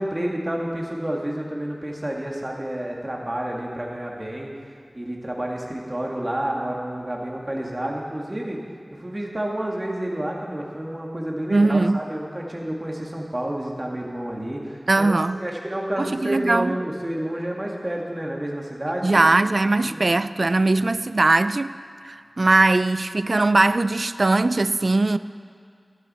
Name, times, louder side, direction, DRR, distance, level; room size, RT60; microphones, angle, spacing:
voice 1, 0.0-4.5 4.9-8.6 8.9-19.3 19.8-20.1, right 1 dB, 30° right, 1.8 m, -29 dB
voice 2, 11.5-12.0 14.9-15.4 16.0-16.8 19.0-21.8 22.0-25.2, right 2 dB, 65° right, 0.3 m, -20 dB
12.5 x 11.0 x 4.2 m
wide cardioid pair, 55°, 0 cm